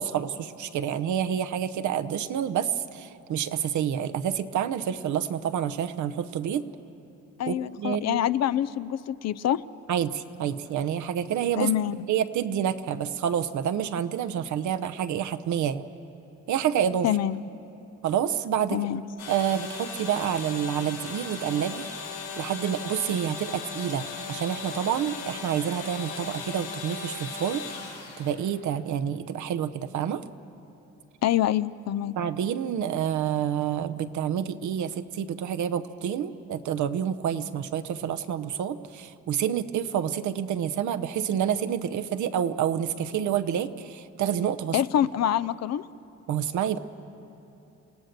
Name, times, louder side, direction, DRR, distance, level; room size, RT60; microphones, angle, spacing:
voice 1, 0.0-6.6 7.5-8.2 9.9-11.7 12.1-15.9 16.5-17.1 18.0-18.8 19.3-21.9 22.4-27.6 28.2-30.2 32.2-44.8 46.3-46.8, right 9 dB, 70° right, 11 dB, 0.9 m, -28 dB
voice 2, 7.4-9.6 11.6-12.0 17.0-17.4 18.7-19.0 31.2-32.1 44.7-45.8, left 11 dB, 60° left, 16 dB, 0.5 m, -25 dB
sound 1, 19.2-28.3, left 5 dB, 90° left, 5.8 m, -37 dB
28.5 x 16.5 x 6.7 m, 2.8 s
cardioid pair, 90°, 30 cm